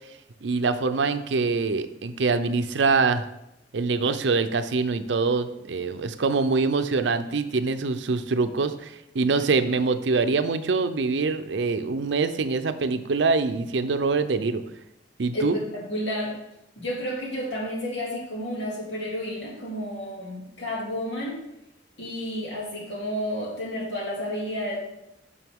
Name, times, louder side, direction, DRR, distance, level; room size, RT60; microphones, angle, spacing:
voice 1, 0.4-3.3 3.7-14.6 15.2-15.6, right 4 dB, 75° right, 10 dB, 0.5 m, -24 dB
voice 2, 15.3-16.3 16.8-21.4 22.0-24.8, equal, 75° left, -3 dB, 2.6 m, -31 dB
9.0 x 6.3 x 3.6 m, 0.86 s
head